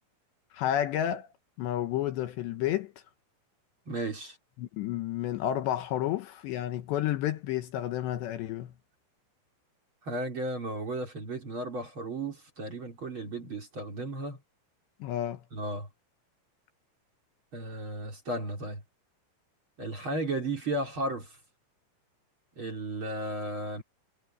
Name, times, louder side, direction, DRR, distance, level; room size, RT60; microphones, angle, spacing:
voice 1, 0.5-1.3 1.6-2.9 4.6-8.7 15.0-15.4, left 11 dB, 75° left, 3.1 m, -31 dB
voice 2, 3.9-4.4 10.0-14.4 15.5-15.9 17.5-18.8 19.8-21.3 22.6-23.8, right 1 dB, 30° right, 3.9 m, -34 dB
omnidirectional pair, 5.6 m